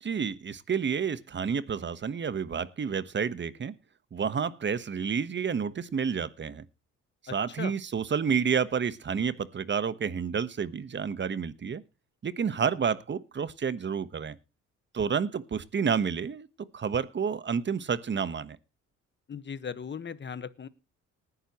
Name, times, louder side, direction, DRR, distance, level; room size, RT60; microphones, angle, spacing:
voice 1, 0.0-3.7 4.1-6.6 7.3-11.8 12.2-14.4 14.9-16.5 16.7-18.6, right 6 dB, 40° right, 15 dB, 1.2 m, -30 dB
voice 2, 7.3-7.7 19.3-20.7, left 6 dB, 35° left, 14 dB, 1.4 m, -38 dB
19.0 x 11.0 x 3.0 m, 0.29 s
cardioid pair, 90°, 30 cm